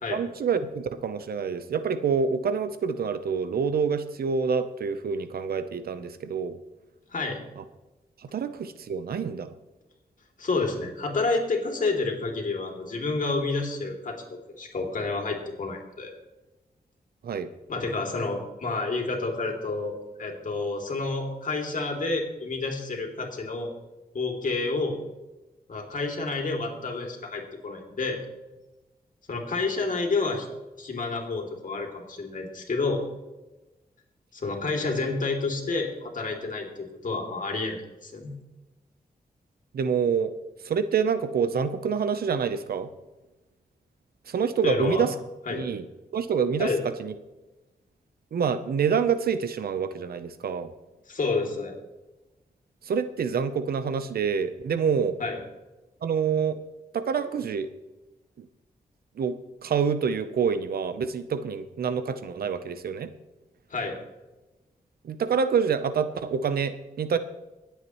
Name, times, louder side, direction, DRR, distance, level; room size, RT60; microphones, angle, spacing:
voice 1, 0.1-6.6 7.6-7.7 8.3-9.5 17.2-17.5 39.7-40.3 40.6-42.9 44.3-45.1 45.5-45.8 46.1-47.1 48.3-50.7 52.9-55.2 56.0-56.6 56.9-57.7 58.4-58.5 59.2-59.4 59.6-63.1 65.0-67.2, right 6 dB, 80° right, 11 dB, 0.8 m, -27 dB
voice 2, 10.4-14.2 14.6-16.1 17.7-19.9 20.2-23.7 24.1-25.0 25.7-28.2 29.3-30.5 30.8-33.0 34.3-38.3 44.6-45.1 45.5-45.6 46.6-46.8 51.1-51.7 55.2-55.4 63.7-64.0, left 3 dB, 60° left, 1 dB, 2.7 m, -29 dB
24.0 x 8.2 x 3.1 m, 1.1 s
cardioid pair, 65°, 16 cm